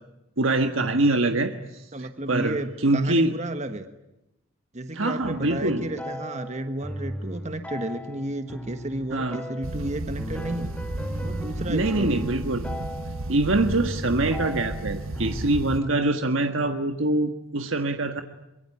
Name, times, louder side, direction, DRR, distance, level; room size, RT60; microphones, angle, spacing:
voice 1, 0.4-3.3 4.9-5.8 9.1-9.4 11.7-12.7 13.3-18.2, right 2 dB, 70° right, 6 dB, 1.5 m, -24 dB
voice 2, 1.9-3.9 4.7-10.7 11.2-12.3, right 1 dB, 35° right, 8 dB, 1.4 m, -32 dB
sound 1, 5.2-15.9, equal, 5° left, 1.9 m, -37 dB
sound 2, 9.6-15.8, right 1 dB, 90° right, 1.4 m, -33 dB
24.5 x 22.5 x 9.8 m, 0.90 s
head